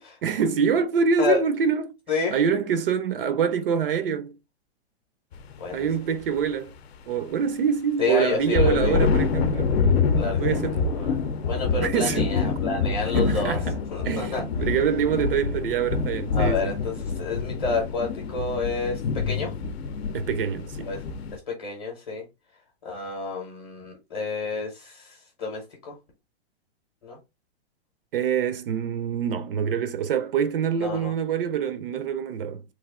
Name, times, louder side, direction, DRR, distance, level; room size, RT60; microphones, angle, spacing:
voice 1, 0.2-1.9 2.3-4.4 5.7-6.7 7.1-9.8 10.4-10.8 11.8-12.3 13.1-13.8 14.0-16.6 20.1-20.9 28.1-32.6, right 7 dB, 55° right, 0.5 m, -25 dB
sound 1, 5.3-5.5 5.9-6.2 8.3-21.4, left 5 dB, 65° left, 0.6 m, -26 dB
voice 2, 8.0-9.0 10.1-11.2 11.4-13.6 13.9-14.4 16.3-19.0 19.3-19.5 20.8-21.0 21.3-22.2 22.8-26.0 27.0-27.2 30.7-31.1, left 4 dB, 25° left, 0.7 m, -29 dB
3.0 x 2.4 x 3.6 m
hypercardioid pair, 170°, 33 cm